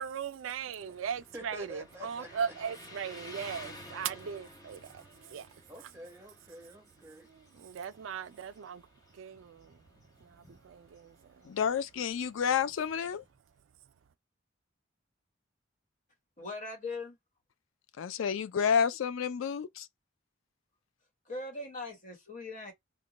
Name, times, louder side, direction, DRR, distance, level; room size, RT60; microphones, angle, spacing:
voice 1, 0.0-5.6 7.2-11.6, right 7 dB, 80° right, 0.4 m, -39 dB
Motorcycle, 0.7-13.4, left 1 dB, 20° left, 0.9 m, -53 dB
voice 2, 1.3-2.4 5.7-7.3, equal, 15° right, 0.9 m, -48 dB
voice 3, 11.5-13.2 18.0-19.9, left 7 dB, 90° left, 0.4 m, -30 dB
voice 4, 16.4-17.2 21.2-22.7, left 3 dB, 40° left, 1.2 m, -40 dB
3.0 x 2.2 x 3.8 m
head